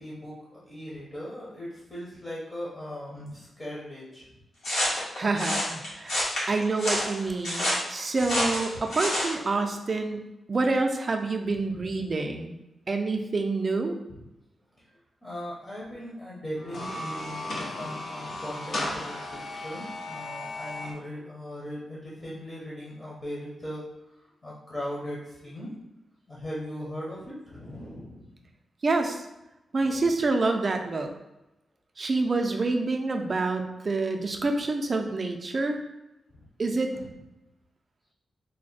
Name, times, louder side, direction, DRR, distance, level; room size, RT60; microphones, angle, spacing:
voice 1, 0.0-4.3 8.4-8.5 11.7-12.0 14.1-14.2 14.8-14.9 15.2-23.8 24.2-25.7 26.3-28.3 29.8-30.0 36.3-36.4 36.9-37.1, equal, 25° left, -6 dB, 0.8 m, -39 dB
sound 1, 4.6-9.4, left 1 dB, 70° left, 1.3 m, -28 dB
voice 2, 5.2-6.2 6.5-12.5 12.9-14.0 28.8-29.3 29.7-31.1 32.0-35.8 36.6-37.0, right 3 dB, 35° right, 4 dB, 0.4 m, -27 dB
sound 2, 16.6-20.9, left 2 dB, 50° left, 0.6 m, -35 dB
3.4 x 2.1 x 3.9 m, 0.95 s
wide cardioid pair, 150°, 0 cm